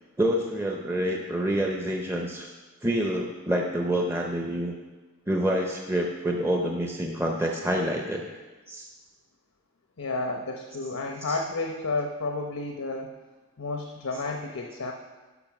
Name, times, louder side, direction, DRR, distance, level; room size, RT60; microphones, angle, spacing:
voice 1, 0.2-2.5 2.8-4.7 5.3-8.2 8.7-8.9 11.3-11.4, right 1 dB, 10° right, 1 dB, 0.5 m, -27 dB
voice 2, 10.0-13.1 13.6-14.9, left 3 dB, 85° left, 3 dB, 0.8 m, -31 dB
11.0 x 5.7 x 5.9 m, 1.3 s
head